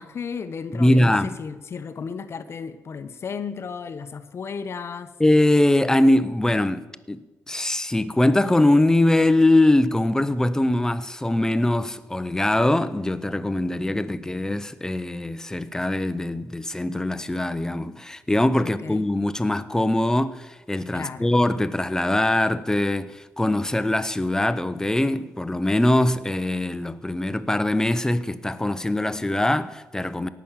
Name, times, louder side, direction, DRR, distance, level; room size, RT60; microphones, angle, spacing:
voice 1, 0.0-5.1 18.6-19.1 20.9-21.3, left 6 dB, 50° left, 0.8 m, -34 dB
voice 2, 0.7-1.4 5.2-30.3, left 1 dB, 10° left, 0.7 m, -22 dB
17.5 x 6.1 x 7.3 m
cardioid pair, 80°, 6 cm